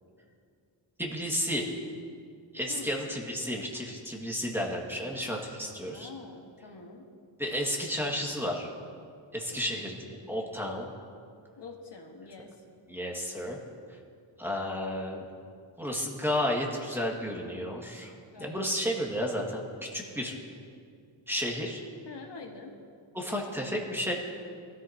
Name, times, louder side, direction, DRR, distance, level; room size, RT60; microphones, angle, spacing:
voice 1, 1.0-1.7 2.5-6.1 7.4-8.7 9.3-10.9 12.9-13.6 14.4-15.2 15.8-18.1 18.4-19.6 19.9-20.3 21.3-21.8 23.1-24.1, equal, 5° right, -1 dB, 1.9 m, -32 dB
voice 2, 5.9-7.0 9.5-10.0 11.6-12.6 18.3-18.6 22.1-22.8, left 4 dB, 60° left, 1 dB, 1.6 m, -45 dB
21.0 x 14.0 x 2.9 m, 2.3 s
wide cardioid pair, 110°, 48 cm